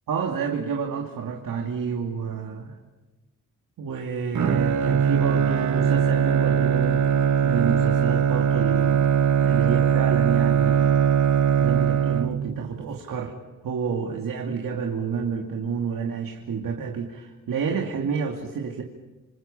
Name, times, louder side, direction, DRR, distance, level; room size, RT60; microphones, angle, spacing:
voice 1, 0.1-2.8 3.8-7.0 7.4-10.9 11.6-13.4 13.6-18.8, right 6 dB, 80° right, 2 dB, 2.6 m, -29 dB
Bowed string instrument, 4.3-12.7, right 8 dB, 60° right, 1.3 m, -21 dB
27.5 x 27.0 x 5.7 m, 1.1 s
cardioid pair, 80°, 33 cm